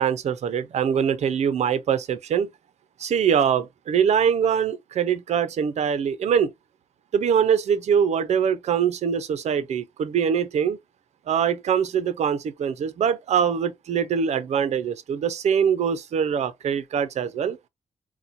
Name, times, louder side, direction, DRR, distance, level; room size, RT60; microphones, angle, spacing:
voice 1, 0.0-2.5 3.0-6.5 7.1-10.8 11.3-17.6, right 7 dB, 65° right, 0.6 m, -23 dB
4.1 x 2.2 x 2.5 m
wide cardioid pair, 140°, 12 cm